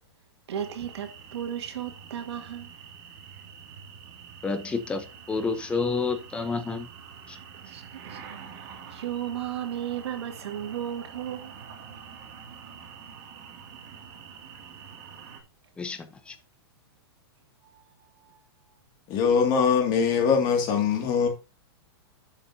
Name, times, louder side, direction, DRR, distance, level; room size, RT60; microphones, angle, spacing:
sound 1, 0.5-15.4, right 7 dB, 40° right, 2.4 m, -46 dB
voice 1, 0.5-2.7 7.6-8.4 8.9-11.5 17.6-18.4, right 10 dB, 80° right, 2.1 m, -35 dB
voice 2, 4.4-6.9 7.3-7.4 15.8-16.4, left 4 dB, 10° left, 0.8 m, -30 dB
voice 3, 19.1-21.3, left 6 dB, 30° left, 2.2 m, -22 dB
10.5 x 7.2 x 2.7 m
supercardioid pair, 165°, 14 cm